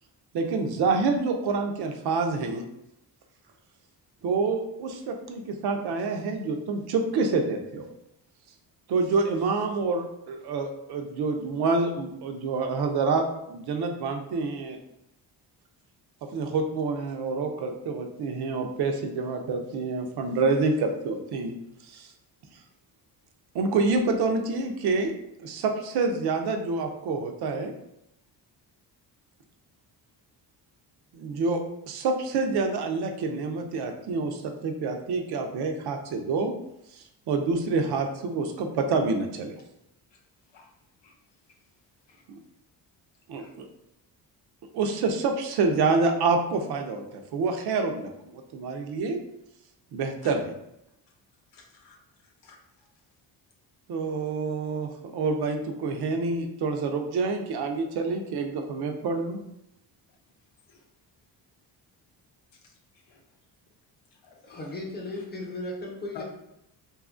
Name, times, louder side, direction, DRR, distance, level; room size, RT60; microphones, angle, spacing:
voice 1, 0.3-2.6 4.2-7.9 8.9-14.8 16.3-21.5 21.8-22.1 23.5-25.1 25.4-27.7 31.1-36.5 37.3-39.6 42.3-42.4 43.3-43.7 44.7-49.2 49.9-50.4 53.9-59.4, right 4 dB, 65° right, 5 dB, 0.5 m, -27 dB
voice 2, 51.5-52.9 60.7-60.8 62.5-62.6 62.9-63.2 64.2-64.7 65.1-65.2 66.1-66.2, left 6 dB, 90° left, 0 dB, 0.7 m, -50 dB
voice 3, 64.4-66.2, left 2 dB, 25° left, -2 dB, 0.8 m, -36 dB
2.7 x 2.4 x 2.4 m, 0.81 s
cardioid pair, 95°, 42 cm